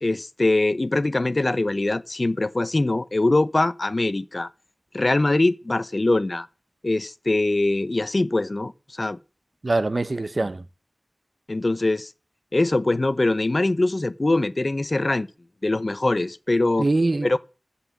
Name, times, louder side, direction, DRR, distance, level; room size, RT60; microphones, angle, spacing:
voice 1, 0.0-4.5 4.9-6.5 6.8-9.2 11.5-12.1 12.5-15.3 15.6-16.9 17.2-17.4, left 2 dB, 50° left, 0.7 m, -22 dB
voice 2, 9.6-10.6 16.8-17.4, right 2 dB, 60° right, 0.8 m, -23 dB
13.5 x 5.6 x 8.3 m
wide cardioid pair, 55°, 0 cm